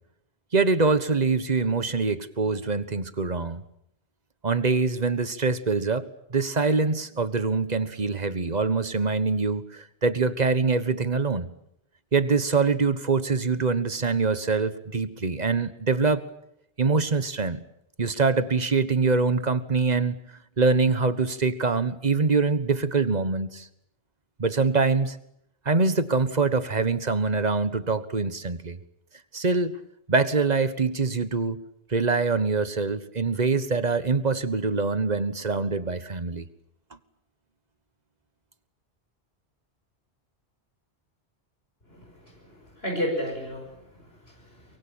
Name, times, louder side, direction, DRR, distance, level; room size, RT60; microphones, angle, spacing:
voice 1, 0.5-3.6 4.4-11.5 12.1-16.2 16.8-17.6 18.0-20.2 20.6-23.7 24.4-25.2 25.6-28.8 29.3-29.8 30.1-31.6 31.9-36.5, right 4 dB, 40° right, 13 dB, 1.4 m, -24 dB
voice 2, 41.9-44.6, equal, 65° left, 1 dB, 6.2 m, -33 dB
24.0 x 23.0 x 8.8 m, 0.76 s
omnidirectional pair, 1.1 m